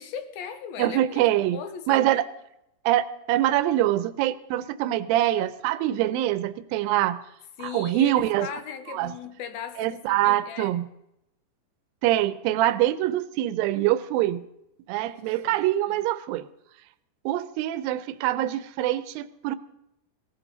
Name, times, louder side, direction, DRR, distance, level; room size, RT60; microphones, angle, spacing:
voice 1, 0.0-1.2 1.5-2.2 7.6-10.7 15.0-15.2 15.5-16.0, left 7 dB, 85° left, 3.0 m, -38 dB
voice 2, 0.8-1.6 1.9-2.2 2.9-7.2 7.6-8.5 8.9-9.1 9.8-10.9 12.0-14.4 14.9-16.5 17.3-19.6, right 14 dB, 85° right, 2.5 m, -24 dB
18.5 x 16.5 x 4.0 m
omnidirectional pair, 4.1 m